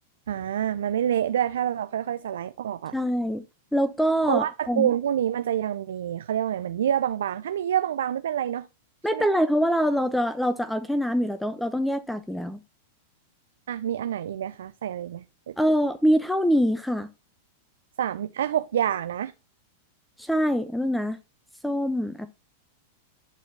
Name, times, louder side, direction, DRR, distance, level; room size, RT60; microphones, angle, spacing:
voice 1, 0.3-3.0 4.3-8.7 9.1-9.3 13.7-15.5 18.0-19.3, right 10 dB, 70° right, 0.5 m, -27 dB
voice 2, 2.9-3.4 3.7-4.9 9.0-12.6 15.6-17.1 20.2-21.2 21.6-22.4, equal, 5° left, 0.7 m, -24 dB
11.5 x 4.2 x 3.2 m
hypercardioid pair, 100°, 0 cm